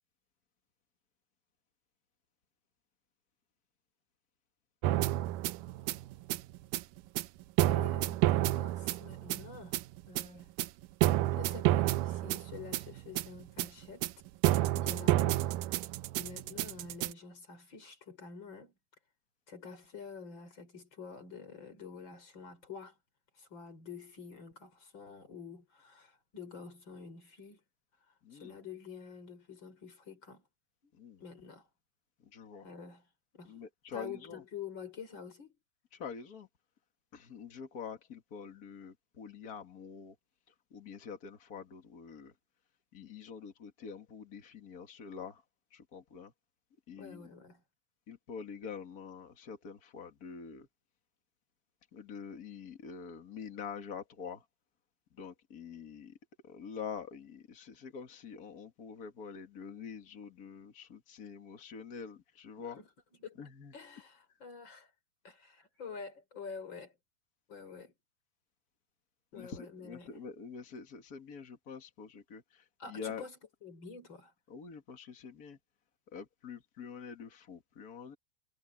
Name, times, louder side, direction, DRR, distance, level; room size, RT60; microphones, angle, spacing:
sound 1, 4.8-17.1, right 16 dB, 85° right, 1.9 m, -30 dB
voice 1, 7.6-10.5 11.3-14.1 14.7-18.7 19.5-23.0 23.3-27.6 28.1-30.4 30.8-30.9 31.2-31.7 32.6-33.1 33.3-33.6 33.9-35.6 47.0-47.6 62.8-62.9 63.2-63.4 63.7-64.9 65.2-67.0 67.5-67.9 69.3-70.2 72.8-73.3 73.6-74.3, left 5 dB, 30° left, 4.6 m, -48 dB
voice 2, 28.2-28.5 30.9-31.2 32.2-32.7 33.4-34.4 35.9-36.5 37.1-40.1 40.5-42.3 42.9-45.4 45.7-46.3 46.9-47.3 48.1-50.7 51.9-54.5 55.1-56.2 56.4-62.8 63.4-63.7 69.3-73.3 74.5-75.6 76.1-78.1, left 6 dB, 45° left, 1.2 m, -46 dB
omnidirectional pair, 4.4 m